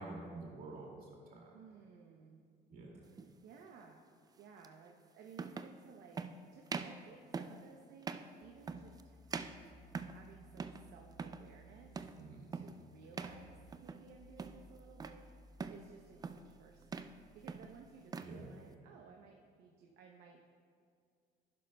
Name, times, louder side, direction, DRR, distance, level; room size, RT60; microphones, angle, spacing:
voice 1, 0.0-1.6 2.7-3.0 12.2-12.5 18.2-18.5, right 2 dB, 60° right, -1 dB, 2.3 m, -48 dB
voice 2, 1.5-2.4 2.9-3.1 3.4-4.1 4.4-9.2 10.0-12.0 12.5-15.3 15.7-20.4, right 6 dB, 75° right, 2 dB, 0.7 m, -58 dB
sound 1, 3.1-3.3 4.6-4.7 5.3-5.8 6.2-6.4 6.7-7.0 7.3-7.6 8.0-8.3 8.7-9.0 9.3-10.3 10.6-10.9 11.1-11.5 12.0-12.2 12.5-12.8 13.1-13.4 13.7-14.1 14.4-15.2 15.6-15.9 16.2-16.5 16.8-17.2 17.5-18.4, right 5 dB, 25° right, 0.4 m, -43 dB
sound 2, 8.4-18.0, equal, 35° left, 1.3 m, -61 dB
11.5 x 10.5 x 2.2 m, 2.2 s
cardioid pair, 110°, 17 cm